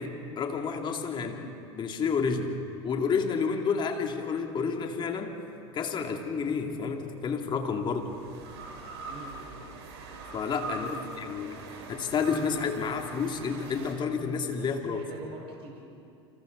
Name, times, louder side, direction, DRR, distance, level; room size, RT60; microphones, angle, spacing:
voice 1, 0.0-1.5 1.7-2.6 2.8-5.4 5.7-8.1 10.3-11.6 11.9-15.0, left 5 dB, 30° left, 3 dB, 2.4 m, -30 dB
sound 1, 3.0-4.5 6.4-13.9, right 3 dB, 65° right, 4.3 m, -43 dB
voice 2, 9.0-9.6 10.6-11.4 14.6-15.8, right 3 dB, 40° right, -1 dB, 4.7 m, -45 dB
29.0 x 26.0 x 4.0 m, 2.5 s
hypercardioid pair, 85°, 15 cm